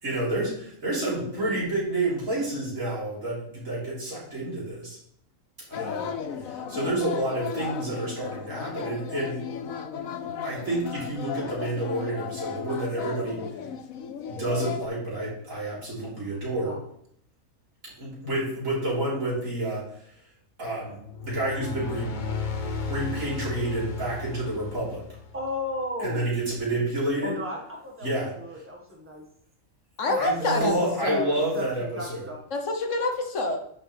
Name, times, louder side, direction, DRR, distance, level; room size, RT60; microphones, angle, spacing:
voice 1, 0.0-5.0 5.7-6.1 6.4-9.4 10.4-13.4 14.3-16.7 17.8-20.0 20.6-22.1 22.8-25.0 26.0-27.3 28.0-28.3 30.2-32.3, right 1 dB, 75° right, -7 dB, 4.5 m, -29 dB
voice 2, 1.0-1.6 30.0-30.7 31.0-31.4 32.5-33.6, left 2 dB, 65° left, 4 dB, 1.5 m, -27 dB
sound 1, 5.7-14.9, left 7 dB, 85° left, 1.1 m, -35 dB
voice 3, 16.2-16.8 25.3-26.3 27.2-28.1 28.4-29.2 30.1-32.4, left 2 dB, 10° right, -1 dB, 1.8 m, -35 dB
sound 2, 21.0-25.6, left 4 dB, 40° left, 0.9 m, -34 dB
11.0 x 6.8 x 3.5 m, 0.68 s
omnidirectional pair, 1.4 m